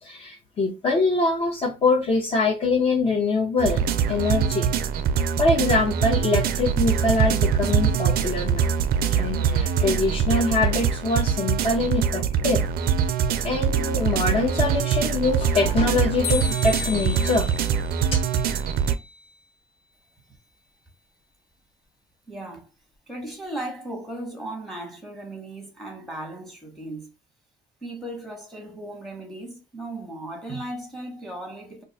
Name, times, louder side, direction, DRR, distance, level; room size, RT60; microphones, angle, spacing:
voice 1, 0.0-4.7 5.4-8.7 9.1-12.6 13.4-17.6, left 3 dB, 35° left, 0.6 m, -24 dB
sound 1, 3.6-18.9, right 7 dB, 60° right, 0.4 m, -23 dB
sound 2, 16.2-19.3, left 6 dB, 60° left, 0.8 m, -35 dB
voice 2, 22.3-22.7 23.1-27.1 27.8-31.8, right 1 dB, ahead, 0.9 m, -36 dB
2.4 x 2.2 x 3.9 m
cardioid pair, 110°, 17 cm